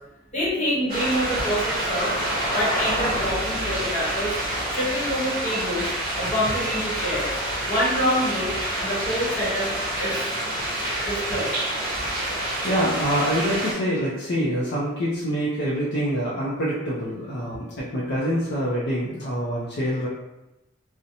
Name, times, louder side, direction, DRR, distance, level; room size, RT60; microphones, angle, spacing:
voice 1, 0.3-2.1 2.5-4.4 4.7-7.4 7.6-10.3 11.0-11.5, equal, 35° left, -7 dB, 1.0 m, -26 dB
sound 1, 0.9-13.7, right 1 dB, 45° right, 0.9 m, -27 dB
voice 2, 12.6-20.1, equal, 55° left, -7 dB, 0.4 m, -25 dB
2.7 x 2.0 x 2.6 m, 0.96 s
head